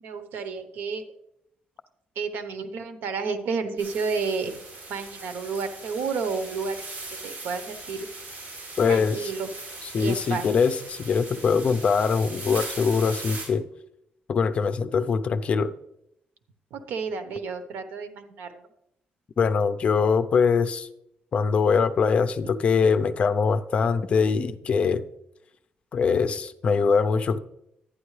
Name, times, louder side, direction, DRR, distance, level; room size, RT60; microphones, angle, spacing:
voice 1, 0.0-1.0 2.2-4.6 4.9-6.8 7.2-8.1 8.8-9.5 10.0-10.5 16.7-18.6, right 5 dB, 85° right, 9 dB, 1.0 m, -31 dB
Grass Blowing in Wind, 3.8-13.5, right 3 dB, 55° right, 4.4 m, -40 dB
voice 2, 8.8-9.2 9.9-13.6 14.3-15.7 19.4-20.9 21.3-25.0 25.9-27.4, left 5 dB, 40° left, 11 dB, 0.5 m, -22 dB
11.5 x 9.7 x 3.2 m, 0.80 s
cardioid pair, 160°, 3 cm